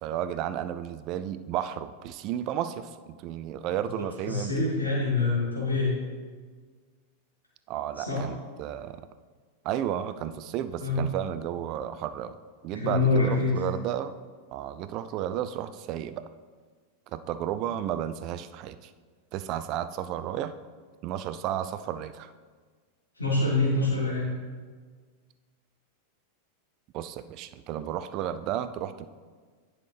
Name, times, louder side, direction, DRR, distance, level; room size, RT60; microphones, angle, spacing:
voice 1, 0.0-4.5 7.7-9.0 9.6-12.4 12.6-14.1 14.5-16.2 17.1-18.9 19.3-20.5 21.0-22.3 26.9-29.1, right 10 dB, 45° right, 11 dB, 0.4 m, -33 dB
voice 2, 4.3-6.0 8.0-8.2 10.8-11.0 12.8-13.6 23.2-24.3, left 3 dB, 90° left, -6 dB, 2.3 m, -25 dB
10.5 x 5.8 x 3.3 m, 1.5 s
figure-of-eight pair, 90°, 0 cm